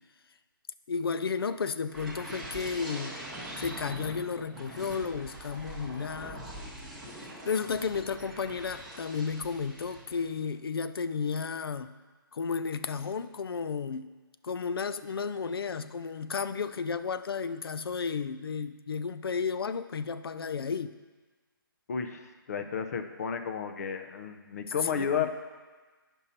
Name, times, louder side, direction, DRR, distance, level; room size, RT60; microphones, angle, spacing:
voice 1, 0.9-3.2 3.6-6.5 7.5-11.9 12.3-14.1 14.4-20.9 24.8-25.3, left 5 dB, 90° left, 12 dB, 0.4 m, -33 dB
sound 1, 1.9-10.4 10.8-11.1, right 1 dB, ahead, 1.0 m, -43 dB
voice 2, 21.9-22.2 22.5-25.3, left 7 dB, 45° left, 7 dB, 0.6 m, -32 dB
8.8 x 5.4 x 4.2 m, 1.3 s
hypercardioid pair, 165°, 12 cm